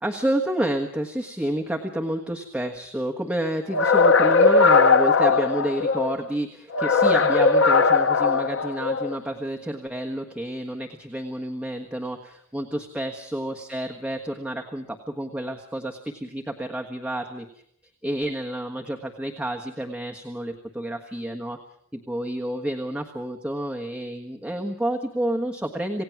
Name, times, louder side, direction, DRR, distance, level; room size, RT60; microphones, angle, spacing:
voice 1, 0.0-17.5 18.0-21.6 21.9-26.0, right 1 dB, 5° right, 1 dB, 1.4 m, -29 dB
sound 1, 3.7-6.1 6.7-9.2, left 4 dB, 65° left, 0.9 m, -19 dB
27.5 x 18.0 x 6.1 m, 0.70 s
head